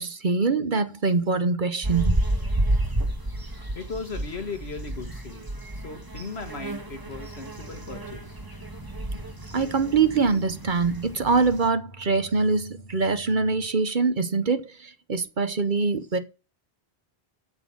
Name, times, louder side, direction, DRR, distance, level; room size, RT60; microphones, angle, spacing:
voice 1, 0.0-2.2 9.5-16.2, right 4 dB, 50° right, 1.1 m, -24 dB
sound 1, 1.8-11.7, right 1 dB, 20° right, 1.5 m, -31 dB
voice 2, 3.8-5.5 5.7-8.7, left 4 dB, 70° left, 1.9 m, -37 dB
sound 2, 7.1-13.7, right 2 dB, 15° left, 4.1 m, -48 dB
8.0 x 6.9 x 7.1 m
omnidirectional pair, 1.1 m